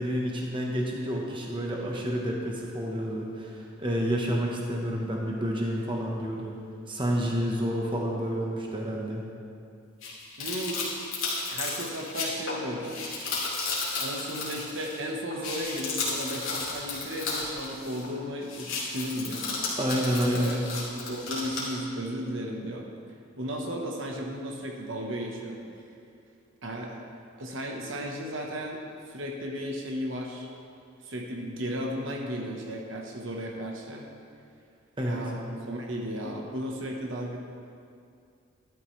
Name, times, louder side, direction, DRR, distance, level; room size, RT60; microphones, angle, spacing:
voice 1, 0.0-6.6 6.9-9.2 19.8-20.6 35.0-35.2, equal, 25° right, -1 dB, 1.1 m, -29 dB
sound 1, 10.0-15.0 15.3-18.1 18.4-21.7, left 3 dB, 65° left, 3.0 m, -33 dB
voice 2, 10.4-10.8 11.5-13.0 13.9-19.5 20.1-20.7 20.9-22.9 23.4-25.6 26.6-27.0 27.4-30.5 31.0-34.0 35.0-37.4, equal, 60° right, 0 dB, 1.2 m, -35 dB
12.5 x 12.5 x 3.3 m, 2.5 s
head